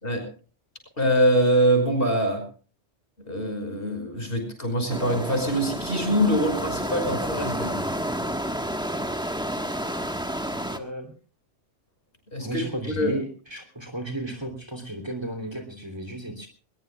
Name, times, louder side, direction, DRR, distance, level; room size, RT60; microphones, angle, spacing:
voice 1, 1.0-2.4 3.3-7.8 12.3-12.6 13.0-13.1, equal, 50° left, 4 dB, 6.1 m, -24 dB
sound 1, 4.9-10.8, equal, 5° right, 1.3 m, -30 dB
voice 2, 10.7-11.1 12.4-16.5, right 1 dB, 20° right, 5 dB, 3.2 m, -34 dB
21.5 x 21.0 x 2.3 m, 0.37 s
omnidirectional pair, 1.2 m